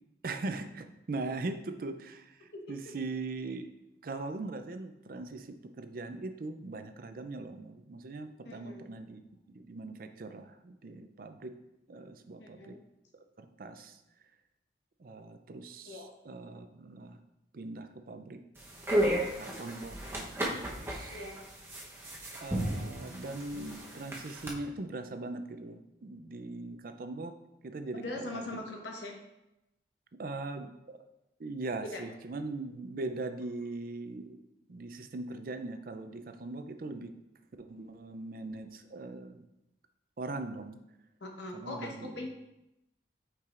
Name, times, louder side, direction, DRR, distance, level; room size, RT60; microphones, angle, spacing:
voice 1, 0.2-3.7 4.0-9.2 9.5-11.5 11.9-12.7 13.4-14.0 15.0-17.2 17.5-18.4 18.9-21.2 22.4-27.4 27.6-28.5 30.2-31.0 31.4-34.4 34.7-37.1 37.6-39.5 40.2-40.8 41.5-42.3, right 2 dB, 50° right, 8 dB, 0.4 m, -40 dB
voice 2, 2.5-2.9 8.4-8.9 12.4-12.8 15.8-16.1 21.1-21.3 27.9-29.2 31.9-32.0 41.2-42.3, left 2 dB, 85° left, 1 dB, 1.1 m, -41 dB
sound 1, 18.6-24.5, right 1 dB, 15° right, 0.9 m, -34 dB
8.4 x 4.7 x 2.5 m, 0.90 s
head